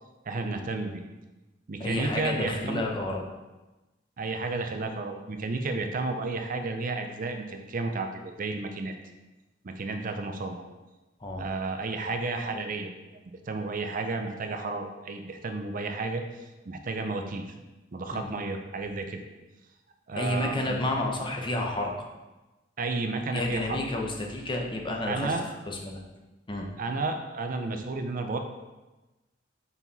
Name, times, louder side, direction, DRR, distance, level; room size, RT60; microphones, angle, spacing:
voice 1, 0.3-1.0 1.7-2.8 4.2-8.9 9.6-10.6 11.4-17.5 17.9-19.2 20.1-20.8 22.8-23.8 25.1-25.4 26.8-28.4, right 3 dB, 45° right, 5 dB, 0.5 m, -32 dB
voice 2, 1.8-3.2 11.2-11.5 18.1-18.3 20.2-21.9 23.3-26.0 26.5-26.7, left 1 dB, 25° left, 1 dB, 0.8 m, -30 dB
5.5 x 4.6 x 4.0 m, 1.1 s
head